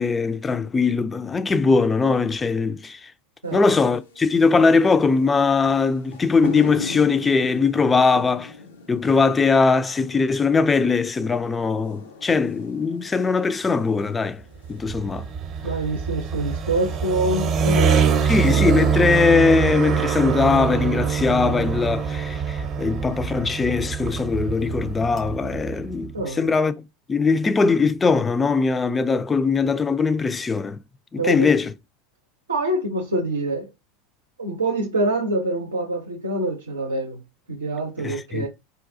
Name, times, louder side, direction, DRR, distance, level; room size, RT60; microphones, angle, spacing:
voice 1, 0.0-3.1 3.5-8.5 8.9-14.4 14.7-15.3 18.3-26.7 27.1-30.8 31.1-31.7 38.0-38.5, left 4 dB, 20° left, 0.3 m, -20 dB
sound 1, 3.4-22.1, left 4 dB, 80° left, 0.6 m, -41 dB
sound 2, 14.5-26.1, right 7 dB, 40° right, 0.6 m, -24 dB
voice 2, 15.6-18.6 26.1-26.5 31.2-31.5 32.5-33.7 34.4-37.2 37.5-38.5, right 2 dB, 85° right, 0.6 m, -25 dB
3.9 x 2.3 x 2.5 m
figure-of-eight pair, 80°, 0 cm